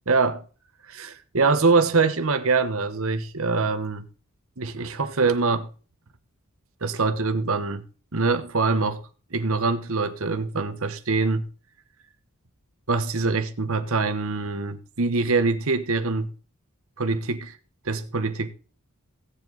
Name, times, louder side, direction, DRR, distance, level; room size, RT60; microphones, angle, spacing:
voice 1, 0.1-0.4 0.9-4.1 4.6-5.7 6.8-7.9 8.1-9.0 9.3-11.5 12.9-16.3 17.0-17.6 17.8-18.5, right 4 dB, 65° right, 1.1 m, -24 dB
16.0 x 7.5 x 4.0 m
head